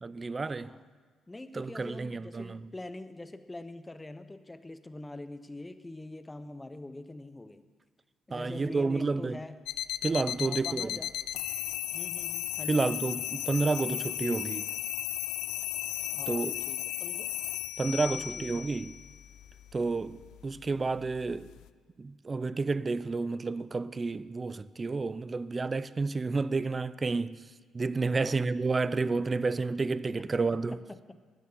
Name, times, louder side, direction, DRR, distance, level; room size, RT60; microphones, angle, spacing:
voice 1, 0.0-0.7 1.5-2.6 8.3-9.4 10.0-11.0 12.7-14.7 16.3-16.6 17.8-18.9 19.7-21.5 22.0-27.4 27.7-30.8, right 3 dB, 30° right, 0.4 m, -30 dB
voice 2, 1.3-7.6 8.3-9.6 10.4-11.1 11.9-13.1 16.1-17.4 18.0-18.8 28.1-28.3 30.5-31.2, left 2 dB, 15° left, 0.7 m, -44 dB
sound 1, 9.7-21.7, left 13 dB, 90° left, 0.4 m, -36 dB
10.0 x 9.4 x 6.8 m
cardioid pair, 90°, 0 cm